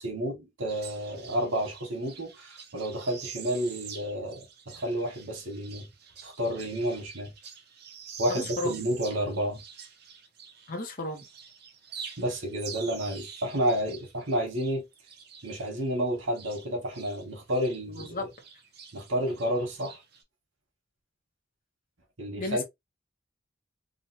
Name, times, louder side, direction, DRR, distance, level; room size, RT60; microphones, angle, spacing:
voice 1, 0.0-5.9 6.2-7.3 8.2-9.6 12.2-14.9 15.4-18.3 18.9-20.0 22.2-22.6, equal, 85° right, 1.2 m, -30 dB
sound 1, 0.7-10.9 11.1-17.2 17.5-20.2, right 7 dB, 55° right, 0.8 m, -46 dB
voice 2, 8.3-8.7 10.7-11.2 18.0-18.3 22.4-22.6, left 2 dB, 45° left, 0.8 m, -33 dB
3.1 x 2.3 x 2.8 m
head